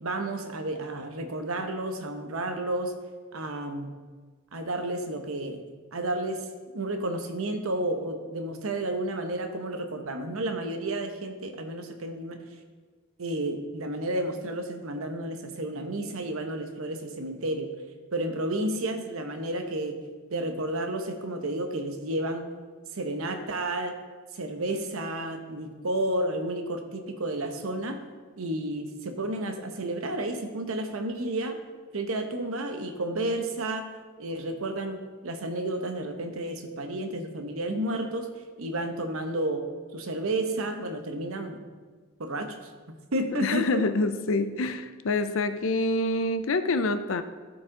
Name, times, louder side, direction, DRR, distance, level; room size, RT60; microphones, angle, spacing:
voice 1, 0.0-2.9 3.3-3.9 4.5-5.6 5.9-6.4 6.7-12.4 13.2-17.7 18.1-20.0 20.3-22.5 22.9-24.0 24.3-28.0 28.4-31.6 31.9-33.9 34.2-38.3 38.6-41.6 42.2-42.6 43.1-43.8, right 1 dB, 80° right, 6 dB, 0.9 m, -31 dB
voice 2, 43.4-47.2, left 2 dB, 65° left, 10 dB, 0.5 m, -26 dB
14.5 x 4.8 x 3.7 m, 1.5 s
head